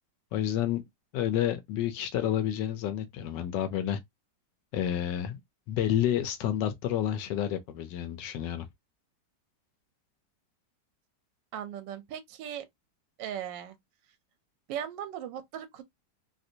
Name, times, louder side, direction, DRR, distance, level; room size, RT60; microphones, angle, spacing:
voice 1, 0.3-0.8 1.1-4.0 4.7-5.4 5.7-8.7, left 11 dB, 75° left, 1.2 m, -29 dB
voice 2, 11.5-12.6 13.2-13.7 14.7-15.8, right 10 dB, 80° right, 1.3 m, -38 dB
3.2 x 2.5 x 2.7 m
omnidirectional pair, 2.0 m